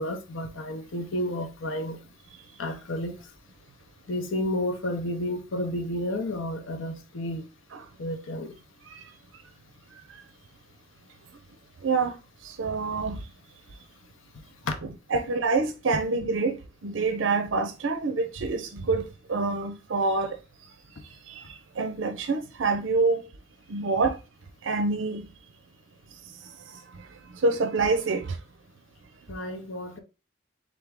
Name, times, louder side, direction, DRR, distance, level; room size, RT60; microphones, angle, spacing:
voice 1, 0.0-2.0 2.6-3.1 4.1-7.4 8.0-8.5 14.7-14.8 29.3-30.0, left 1 dB, 90° left, 0.8 m, -31 dB
voice 2, 12.4-13.2 15.1-16.6 16.8-20.4 21.3-21.4 21.8-23.2 23.7-24.2 24.6-25.2 27.4-28.2, right 3 dB, 80° right, 0.5 m, -26 dB
3.7 x 3.4 x 3.6 m
head